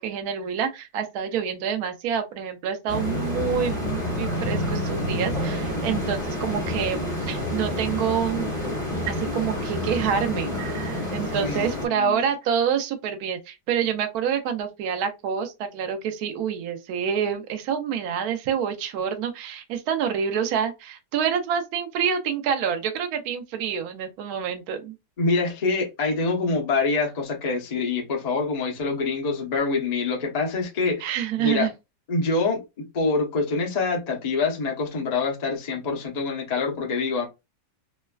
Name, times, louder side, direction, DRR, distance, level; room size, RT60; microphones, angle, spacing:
voice 1, 0.0-8.5 9.1-24.9 31.0-31.7, right 8 dB, 70° right, 1.0 m, -27 dB
sound 1, 2.9-11.9, left 1 dB, ahead, 1.1 m, -28 dB
voice 2, 11.4-12.2 25.2-31.7 32.1-32.6 32.9-37.3, left 3 dB, 55° left, 0.4 m, -25 dB
3.1 x 2.1 x 2.2 m
omnidirectional pair, 1.8 m